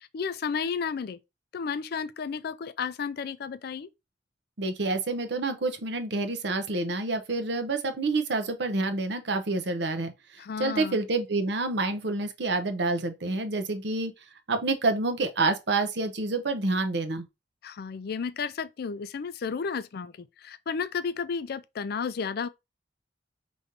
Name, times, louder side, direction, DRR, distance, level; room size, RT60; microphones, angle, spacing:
voice 1, 0.1-1.2 1.5-3.9 10.4-11.0 17.6-22.5, left 6 dB, 55° left, 0.4 m, -32 dB
voice 2, 4.6-14.1 14.5-17.2, right 3 dB, 65° right, 0.8 m, -28 dB
5.1 x 3.1 x 2.6 m
head